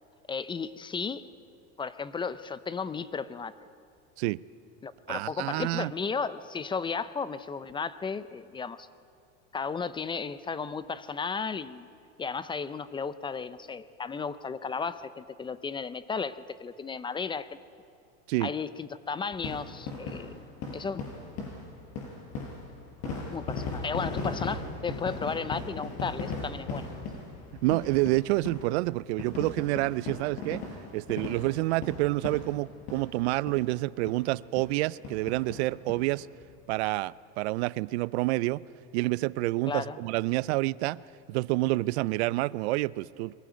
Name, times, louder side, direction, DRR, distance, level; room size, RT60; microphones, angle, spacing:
voice 1, 0.3-1.3 1.8-3.6 4.8-8.9 9.5-11.9 12.2-17.6 18.4-20.4 20.7-21.0 23.3-26.9 39.7-40.0, left 5 dB, 15° left, 0.5 m, -34 dB
voice 2, 5.1-5.9 18.3-18.5 27.6-30.6 30.9-36.3 36.7-38.6 38.9-41.0 41.3-43.3, right 20 dB, 80° right, 0.5 m, -28 dB
sound 1, 19.3-33.2 33.5-33.6 34.1-34.2 34.6-34.7 35.0-36.0 36.4-36.5 36.7-36.8, left 4 dB, 50° left, 5.0 m, -37 dB
22.5 x 15.5 x 9.2 m
supercardioid pair, 130°, 32 cm